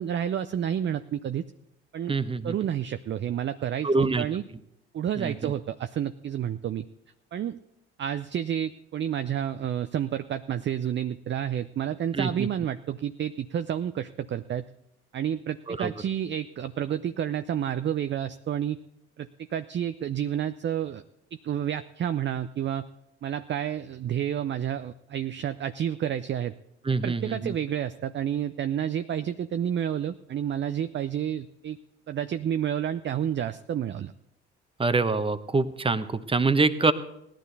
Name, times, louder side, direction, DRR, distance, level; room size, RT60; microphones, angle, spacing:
voice 1, 0.0-1.4 1.9-2.2 2.4-4.4 4.9-6.9 7.3-7.6 8.0-14.6 15.1-18.8 19.2-21.0 21.3-22.9 23.2-26.5 27.0-31.8 32.1-34.1, right 9 dB, 35° right, 10 dB, 0.5 m, -30 dB
voice 2, 2.1-2.5 3.8-4.3 5.2-5.5 12.1-12.5 15.7-15.9 26.8-27.5 34.8-36.9, right 3 dB, 15° right, 12 dB, 1.0 m, -25 dB
17.5 x 11.5 x 4.1 m, 0.81 s
hypercardioid pair, 55°, 34 cm